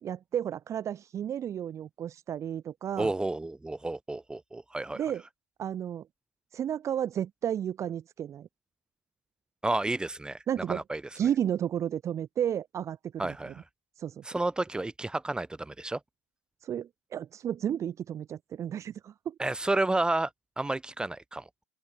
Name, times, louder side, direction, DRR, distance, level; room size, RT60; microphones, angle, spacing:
voice 1, 0.0-3.1 5.0-5.2 5.6-6.1 6.5-8.5 10.5-10.8 11.2-13.0 13.2-13.5 14.0-14.2 16.6-19.4, right 9 dB, 40° right, 2.2 m, -32 dB
voice 2, 3.0-5.0 9.6-11.0 13.2-13.6 14.2-16.0 19.4-20.3 20.6-21.5, right 2 dB, 10° right, 2.6 m, -31 dB
open air
hypercardioid pair, 80°, 8 cm